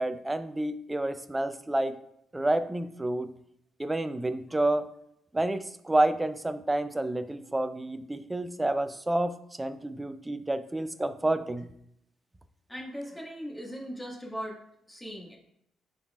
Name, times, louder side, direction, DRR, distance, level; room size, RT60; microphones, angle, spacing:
voice 1, 0.0-2.0 2.3-3.3 3.8-4.9 5.3-11.7, right 1 dB, 15° right, 11 dB, 0.4 m, -29 dB
voice 2, 12.7-14.6 14.9-15.4, equal, 10° left, -2 dB, 1.7 m, -39 dB
10.5 x 3.9 x 2.4 m, 0.75 s
cardioid pair, 90°, 0 cm